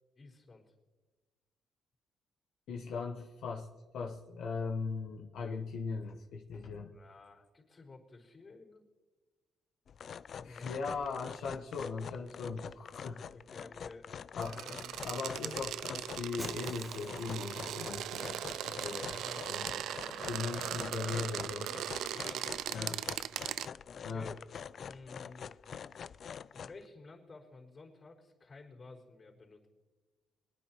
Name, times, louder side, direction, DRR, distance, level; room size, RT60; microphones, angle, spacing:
voice 1, 0.2-0.7 6.9-8.8 10.5-10.7 12.1-12.2 13.3-14.1 14.4-15.0 18.9-19.5 20.0-20.5 22.1-23.2 23.9-24.4 24.8-25.5 26.5-29.7, left 3 dB, 40° left, -2 dB, 4.3 m, -53 dB
voice 2, 2.7-3.7 3.9-6.9 10.4-13.2 14.3-14.6 15.0-19.2 19.5-19.8 20.3-21.7 22.7-23.0 24.0-24.3, left 4 dB, 75° left, -1 dB, 1.1 m, -39 dB
sound 1, 9.9-26.8, left 7 dB, 55° left, 0.3 m, -46 dB
sound 2, 14.4-23.7, right 11 dB, 80° right, 0.3 m, -39 dB
Shatter, 16.4-17.7, right 1 dB, 10° right, 1.2 m, -49 dB
24.5 x 9.9 x 3.1 m, 1.3 s
cardioid pair, 90°, 0 cm